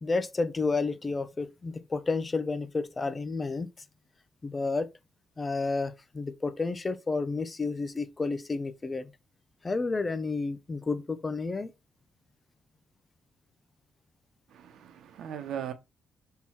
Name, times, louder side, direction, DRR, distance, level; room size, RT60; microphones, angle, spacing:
voice 1, 0.0-3.7 4.4-4.9 5.4-9.1 9.6-11.7, left 3 dB, 25° left, 0.7 m, -31 dB
voice 2, 14.5-15.7, right 9 dB, 75° right, 1.1 m, -38 dB
5.9 x 3.8 x 4.3 m
cardioid pair, 90°, 0 cm